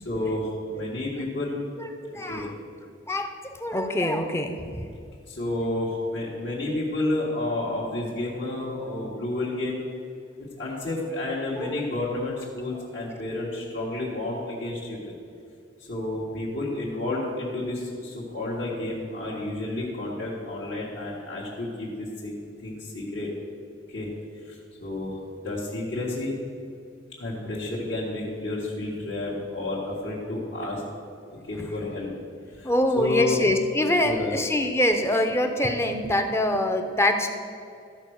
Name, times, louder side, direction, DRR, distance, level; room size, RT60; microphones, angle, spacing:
voice 1, 0.0-1.6 2.3-2.5 5.3-9.8 10.6-15.1 15.9-23.3 23.9-24.1 24.4-25.2 25.4-26.3 27.2-30.8 31.5-32.1 32.5-33.4 34.0-34.4, left 2 dB, 70° left, -8 dB, 1.8 m, -30 dB
voice 2, 2.0-2.5 3.1-4.8 11.5-11.8 31.6-31.7 32.6-37.3, left 1 dB, 15° left, 5 dB, 0.6 m, -24 dB
13.5 x 4.5 x 6.5 m, 2.4 s
head